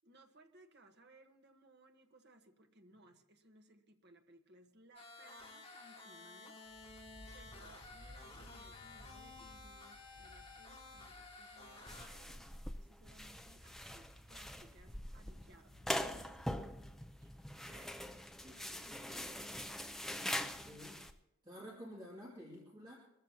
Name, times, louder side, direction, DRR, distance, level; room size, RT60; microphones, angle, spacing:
voice 1, 0.0-6.9 7.3-16.6 17.6-18.2 18.4-19.5, right 2 dB, 50° right, 5 dB, 1.3 m, -63 dB
sound 1, 4.9-12.1, left 3 dB, 30° left, 2.7 m, -54 dB
sound 2, 6.7-12.2 12.7-12.8 13.1-18.6, equal, 70° right, 3.2 m, -60 dB
sound 3, 11.9-21.1, left 1 dB, ahead, 0.4 m, -43 dB
voice 2, 20.3-21.0 21.4-22.9, equal, 20° right, -6 dB, 2.5 m, -51 dB
24.0 x 13.5 x 2.9 m, 0.91 s
head